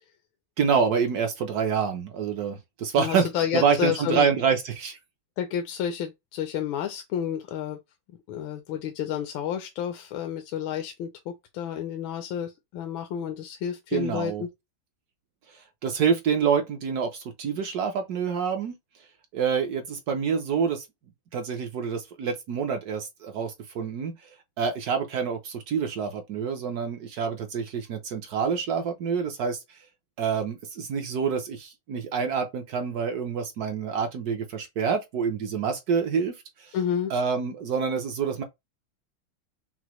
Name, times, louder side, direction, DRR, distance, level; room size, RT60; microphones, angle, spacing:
voice 1, 0.6-3.3 3.5-5.0 13.9-14.4 15.8-18.7 19.3-20.8 21.3-24.1 24.6-29.6 30.2-36.3 36.6-36.7 37.1-38.4, right 6 dB, 65° right, 1.0 m, -27 dB
voice 2, 3.0-4.3 5.4-7.8 8.3-14.5 36.7-37.1, left 9 dB, 85° left, 1.4 m, -30 dB
5.9 x 2.0 x 3.0 m
omnidirectional pair, 2.1 m